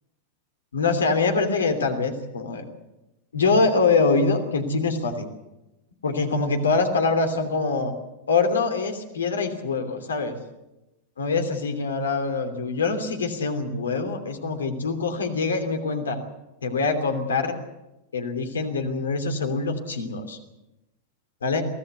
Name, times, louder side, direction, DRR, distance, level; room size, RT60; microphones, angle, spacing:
voice 1, 0.7-2.6 3.3-5.2 6.0-7.9 8.3-10.3 11.2-16.2 16.6-17.5 18.1-20.4 21.4-21.6, left 4 dB, 70° left, 6 dB, 3.0 m, -24 dB
24.0 x 17.0 x 8.2 m, 0.96 s
figure-of-eight pair, 90°, 0 cm